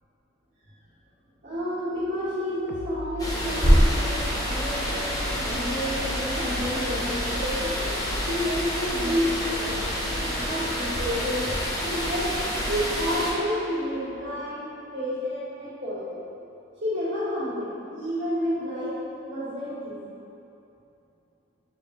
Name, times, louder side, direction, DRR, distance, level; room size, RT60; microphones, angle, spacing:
voice 1, 1.4-8.0 8.3-9.8 10.2-11.5 11.8-16.2 16.8-19.0 19.2-20.1, equal, 60° right, -15 dB, 1.4 m, -30 dB
sound 1, 2.7-14.0, left 1 dB, 55° left, 0.4 m, -39 dB
sound 2, 3.2-13.3, equal, 20° left, 0.7 m, -27 dB
5.3 x 2.5 x 3.4 m, 2.8 s
head